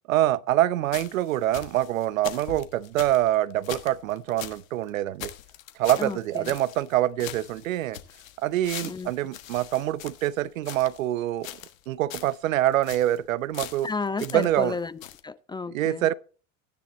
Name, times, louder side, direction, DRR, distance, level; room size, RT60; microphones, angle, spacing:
voice 1, 0.1-5.3 5.8-8.0 8.4-11.5 11.9-13.9 14.2-14.8 15.7-16.1, right 13 dB, 80° right, 0.6 m, -25 dB
sound 1, 0.9-4.6 4.9-5.0 5.2-6.9 7.2-11.0 11.4-11.8 12.1-12.4 12.7-13.2 13.5-14.7 15.0-15.2, left 12 dB, 75° left, 1.4 m, -41 dB
voice 2, 13.8-16.1, left 4 dB, 10° left, 0.4 m, -32 dB
13.0 x 9.7 x 4.1 m
hypercardioid pair, 80°, 40 cm